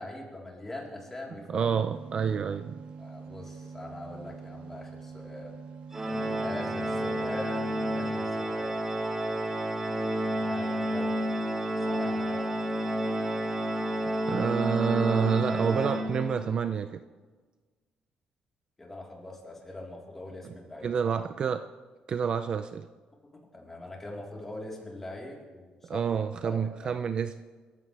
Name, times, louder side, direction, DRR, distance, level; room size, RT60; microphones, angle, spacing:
voice 1, 0.0-1.7 3.0-5.6 6.4-8.8 10.3-11.2 11.9-12.5 18.8-21.2 23.5-26.0 26.4-26.9, left 2 dB, 15° left, -3 dB, 3.8 m, -42 dB
voice 2, 1.5-2.8 14.1-17.0 20.8-21.6 22.1-22.9 25.8-27.4, right 7 dB, 40° right, 10 dB, 0.5 m, -28 dB
sound 1, 1.5-8.1, right 5 dB, 70° right, 1.8 m, -45 dB
Organ, 5.9-16.6, right 1 dB, 15° right, 1.1 m, -30 dB
27.5 x 14.5 x 3.4 m, 1.4 s
cardioid pair, 155°, 2 cm